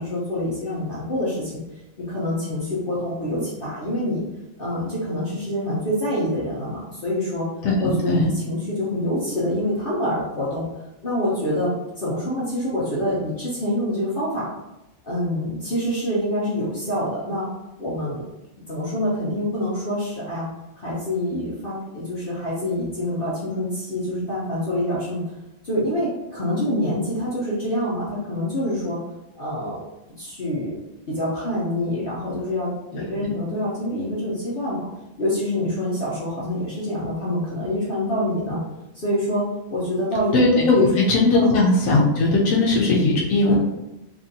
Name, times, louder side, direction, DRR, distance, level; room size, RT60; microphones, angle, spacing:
voice 1, 0.0-1.5 2.0-4.2 4.6-7.5 7.8-10.7 11.0-14.4 15.0-17.5 17.8-18.3 18.7-20.5 20.8-25.4 25.6-29.0 29.3-29.8 30.2-30.7 31.1-34.9 35.2-38.6 38.9-41.1 41.3-41.5 43.4-43.5, left 1 dB, 50° left, -8 dB, 0.8 m, -26 dB
voice 2, 7.6-8.3 33.2-33.3 40.3-43.5, left 2 dB, 75° left, -3 dB, 1.0 m, -18 dB
2.9 x 2.6 x 2.6 m, 0.96 s
omnidirectional pair, 1.4 m